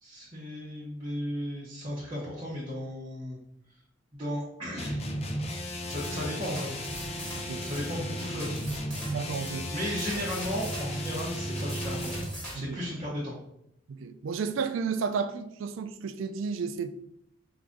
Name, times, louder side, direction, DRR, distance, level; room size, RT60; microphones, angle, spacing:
voice 1, 0.0-3.4 4.1-5.0 5.8-6.8 7.6-8.6 9.7-12.3 12.5-13.3, equal, 25° right, -7 dB, 0.9 m, -35 dB
sound 1, 4.8-12.4, equal, 35° left, 0.6 m, -35 dB
sound 2, 5.9-12.6, equal, 5° left, 1.5 m, -41 dB
voice 2, 9.1-9.7 12.6-12.8 13.9-17.0, right 5 dB, 90° right, 10 dB, 0.4 m, -32 dB
4.8 x 2.6 x 3.6 m, 0.75 s
head